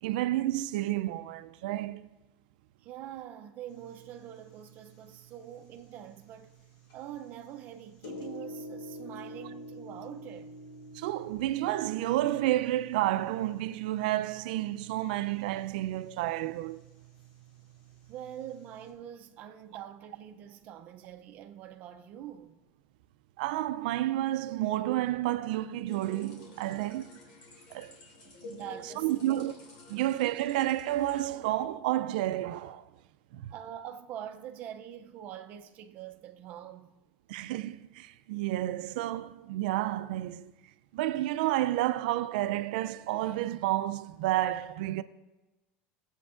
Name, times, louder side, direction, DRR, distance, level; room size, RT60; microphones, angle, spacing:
voice 1, 0.0-2.1 10.9-16.8 23.4-27.1 27.7-27.9 28.4-28.6 29.0-29.5 29.9-32.9 33.3-33.5 37.3-40.5 40.9-45.0, right 15 dB, 90° right, 0.4 m, -30 dB
voice 2, 2.8-6.5 6.9-10.5 18.1-22.6 28.3-29.4 29.9-30.1 33.5-37.0, right 10 dB, 35° right, 0.5 m, -45 dB
sound 1, 3.7-18.9, equal, 60° left, 2.3 m, -49 dB
sound 2, 25.9-31.2, left 2 dB, 85° left, 2.6 m, -50 dB
19.0 x 7.9 x 2.5 m
cardioid pair, 175°, 5 cm